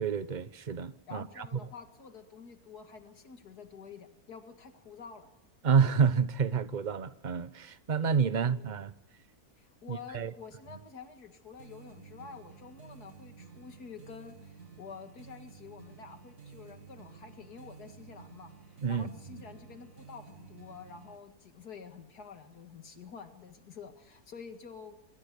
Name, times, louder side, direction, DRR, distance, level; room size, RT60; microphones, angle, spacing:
voice 1, 0.0-1.5 5.6-8.9 9.9-10.3 18.8-19.1, right 6 dB, 35° right, 1.1 m, -29 dB
voice 2, 1.1-5.3 8.0-8.8 9.6-25.0, left 6 dB, 85° left, 2.5 m, -49 dB
sound 1, 11.6-21.2, right 5 dB, 60° right, 2.8 m, -52 dB
26.5 x 24.5 x 8.5 m
omnidirectional pair, 1.6 m